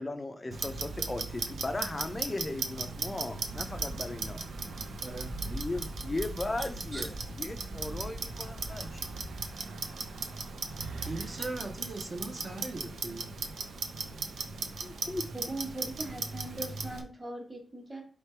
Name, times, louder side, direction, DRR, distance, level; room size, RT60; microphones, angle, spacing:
voice 1, 0.0-4.4 5.4-9.2 14.8-15.2, left 2 dB, 20° left, 8 dB, 0.4 m, -37 dB
Clock, 0.5-17.0, right 4 dB, 85° right, 0.5 m, -38 dB
sound 1, 3.5-9.4, right 1 dB, 60° right, 1.2 m, -43 dB
voice 2, 5.0-5.3 6.9-7.1 11.1-13.3, right 2 dB, 35° right, 2 dB, 0.7 m, -39 dB
voice 3, 15.3-18.0, right 2 dB, 15° right, 1 dB, 1.3 m, -40 dB
3.3 x 3.2 x 4.4 m, 0.40 s
wide cardioid pair, 145°, 0 cm